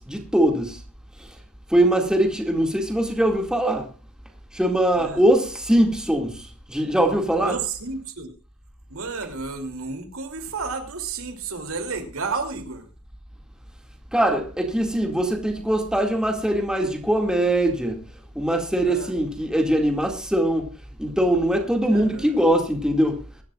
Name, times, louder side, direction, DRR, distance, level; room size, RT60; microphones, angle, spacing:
voice 1, 0.1-0.8 1.7-3.9 4.5-6.4 6.7-7.5 14.1-18.0 18.4-20.6 21.0-23.2, right 1 dB, 5° right, 2.2 m, -21 dB
voice 2, 7.4-8.3 8.9-12.9 18.8-19.2 21.8-22.3, right 4 dB, 65° right, 3.0 m, -32 dB
23.5 x 12.0 x 2.4 m
head